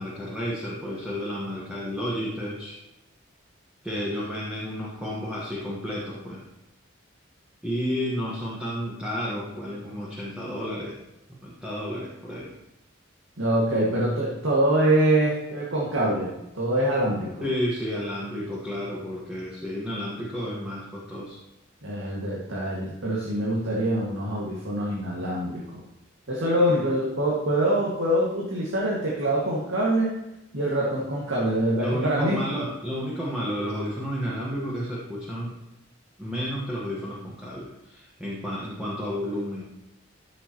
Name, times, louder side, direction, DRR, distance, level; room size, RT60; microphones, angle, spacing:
voice 1, 0.0-2.8 3.8-6.4 7.6-11.0 11.4-12.5 17.4-21.4 31.8-35.5 36.2-39.7, equal, 5° right, -6 dB, 1.4 m, -31 dB
voice 2, 13.4-17.5 21.8-25.8 26.3-30.2 30.5-32.4, right 1 dB, 75° right, -5 dB, 2.0 m, -24 dB
14.0 x 6.9 x 3.0 m, 0.91 s
head